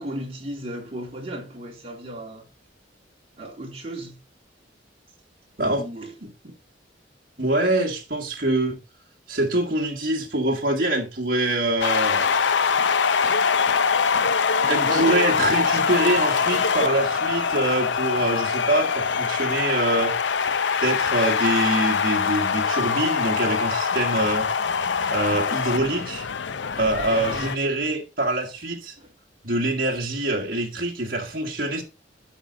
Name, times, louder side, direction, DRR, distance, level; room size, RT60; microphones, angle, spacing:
voice 1, 0.0-2.5 3.4-4.2 5.7-6.1 14.6-15.2 27.1-27.8 29.0-29.1, equal, 35° right, 3.2 m, -35 dB
voice 2, 7.4-8.8 9.3-12.4 14.6-20.1 20.8-24.5 25.1-26.3 26.8-29.0 29.4-31.8, right 1 dB, 55° right, 1.9 m, -24 dB
sound 1, 11.8-27.6, left 5 dB, 70° left, 0.6 m, -23 dB
11.5 x 6.5 x 4.0 m
head